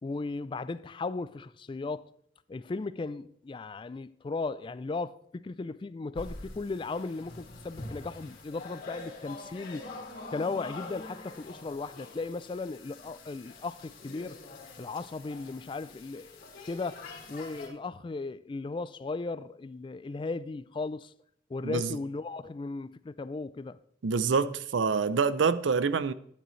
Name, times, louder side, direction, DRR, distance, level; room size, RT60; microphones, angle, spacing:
voice 1, 0.0-2.1 2.5-9.9 10.3-14.4 14.8-21.1 21.5-23.8, left 3 dB, 25° left, 0.3 m, -36 dB
sound 1, 6.2-17.7, left 3 dB, 50° left, 2.4 m, -45 dB
voice 2, 21.6-22.0 24.0-26.1, right 5 dB, 80° right, 0.5 m, -26 dB
12.0 x 10.0 x 3.2 m
head